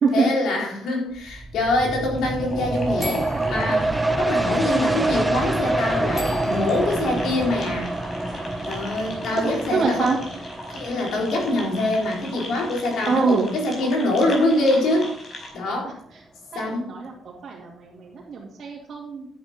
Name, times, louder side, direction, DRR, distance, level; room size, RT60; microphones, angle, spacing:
voice 1, 0.1-7.9 8.7-10.1 10.7-15.1 15.5-16.0 16.5-16.8, left 2 dB, 75° left, -2 dB, 4.0 m, -24 dB
sound 1, 1.1-14.4 14.9-15.0, right 2 dB, 10° right, 1.0 m, -27 dB
sound 2, 2.2-15.5, left 2 dB, 45° left, 5.2 m, -38 dB
sound 3, 3.0-3.9 6.1-7.0, equal, 5° left, 4.4 m, -37 dB
voice 2, 9.4-10.2 13.1-13.5 16.5-17.1 17.4-19.3, right 5 dB, 55° right, -5 dB, 2.4 m, -24 dB
11.0 x 9.4 x 3.7 m, 0.67 s
cardioid pair, 90°, 0 cm